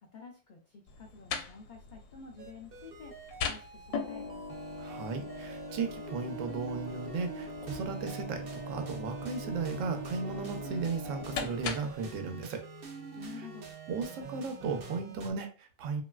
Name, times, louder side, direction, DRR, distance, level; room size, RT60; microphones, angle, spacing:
voice 1, 0.0-4.4 13.1-13.7, left 5 dB, 65° left, 0 dB, 0.4 m, -50 dB
sound 1, 0.9-12.1, left 4 dB, 80° left, 1.0 m, -41 dB
sound 2, 2.4-15.3, right 5 dB, 60° right, 0.6 m, -45 dB
voice 2, 4.8-12.6 13.9-16.0, right 5 dB, 80° right, 6 dB, 0.9 m, -36 dB
3.1 x 2.5 x 2.2 m, 0.37 s
omnidirectional pair, 1.3 m